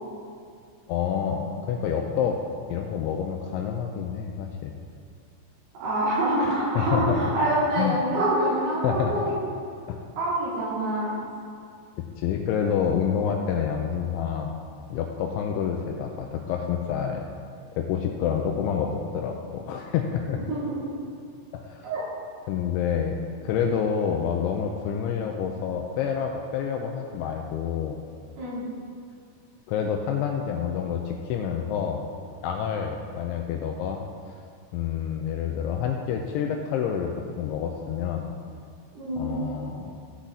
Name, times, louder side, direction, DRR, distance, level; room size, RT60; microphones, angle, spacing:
voice 1, 0.9-2.4 2.7-4.7 6.4-7.2 7.8-8.0 8.4-8.6 8.8-9.1 9.9-10.0 12.2-14.6 14.9-17.2 17.7-20.4 21.5-21.9 22.5-23.2 23.4-28.0 29.7-32.1 32.4-34.0 34.7-38.3 39.2-39.9, left 7 dB, 85° left, 2 dB, 2.7 m, -28 dB
voice 2, 5.8-9.3 10.2-11.2 20.5-20.9 21.8-22.0 28.4-28.6 38.9-39.3, right 1 dB, 80° right, -9 dB, 5.9 m, -26 dB
16.5 x 6.2 x 4.0 m, 2.2 s
omnidirectional pair, 5.8 m